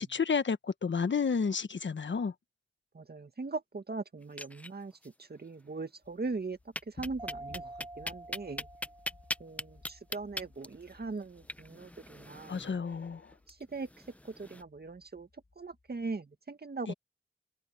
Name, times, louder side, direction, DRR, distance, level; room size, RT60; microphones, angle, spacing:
voice 1, 0.0-2.3 12.5-13.3 16.9-17.0, left 5 dB, 65° left, 1.3 m, -31 dB
voice 2, 2.9-6.6 6.9-8.7 9.4-12.8 13.5-13.9 14.2-15.3 15.6-16.9, right 3 dB, 50° right, 1.9 m, -40 dB
sound 1, 4.2-5.1 5.4-5.5 5.8-5.9 6.8-14.6, left 1 dB, 5° left, 1.1 m, -41 dB
sound 2, 6.0-16.2, left 3 dB, 45° left, 3.7 m, -58 dB
Mallet percussion, 7.2-9.7, right 2 dB, 20° right, 2.3 m, -47 dB
cardioid pair, 40°, 20 cm